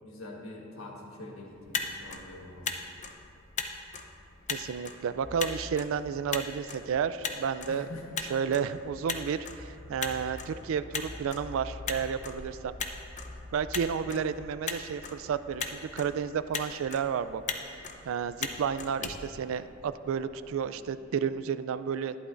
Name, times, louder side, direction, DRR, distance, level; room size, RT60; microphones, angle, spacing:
voice 1, 0.0-3.1 7.7-8.0, left 1 dB, 80° left, -1 dB, 1.4 m, -45 dB
Motor vehicle (road), 1.5-20.1, left 5 dB, 35° left, 0.6 m, -40 dB
voice 2, 4.5-7.9 8.2-12.7 13.5-17.4 18.0-22.1, right 7 dB, 70° right, 14 dB, 0.3 m, -31 dB
sound 1, 5.2-21.4, left 1 dB, 20° right, 1.9 m, -49 dB
12.0 x 11.0 x 2.5 m, 2.6 s
head